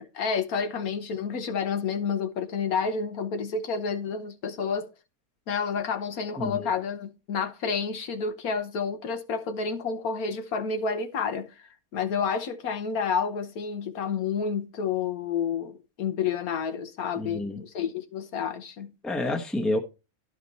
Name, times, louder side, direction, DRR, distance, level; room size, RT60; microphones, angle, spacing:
voice 1, 0.0-4.9 5.5-11.5 11.9-18.9, left 6 dB, 80° left, 1.5 m, -30 dB
voice 2, 6.4-6.7 17.2-17.6 19.0-19.8, left 2 dB, ahead, 0.9 m, -29 dB
12.0 x 5.1 x 4.1 m
omnidirectional pair, 1.5 m